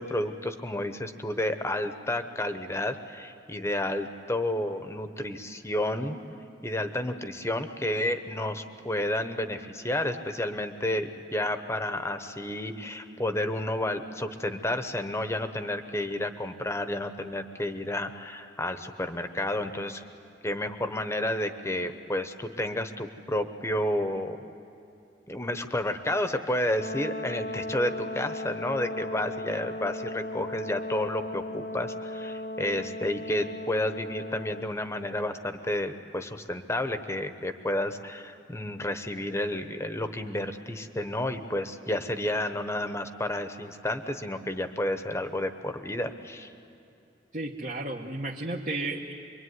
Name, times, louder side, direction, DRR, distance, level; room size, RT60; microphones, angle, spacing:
voice 1, 0.0-6.2 6.6-20.0 20.4-24.4 25.3-46.5, left 1 dB, 15° left, 8 dB, 1.1 m, -31 dB
Brass instrument, 26.7-34.7, left 1 dB, 50° left, 0.6 m, -36 dB
voice 2, 47.3-49.1, right 2 dB, 45° right, -1 dB, 1.3 m, -33 dB
25.5 x 23.5 x 9.6 m, 2.7 s
head